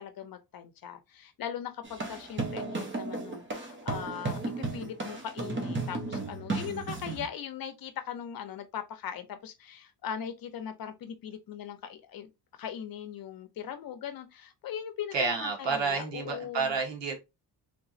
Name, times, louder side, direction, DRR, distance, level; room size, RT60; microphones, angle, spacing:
voice 1, 0.0-12.3 12.6-16.8, left 8 dB, 55° left, 0.7 m, -40 dB
sound 1, 1.8-7.3, right 3 dB, 25° right, 0.9 m, -34 dB
voice 2, 15.1-17.1, right 5 dB, 80° right, 1.4 m, -30 dB
3.4 x 3.0 x 2.7 m
cardioid pair, 150°, 43 cm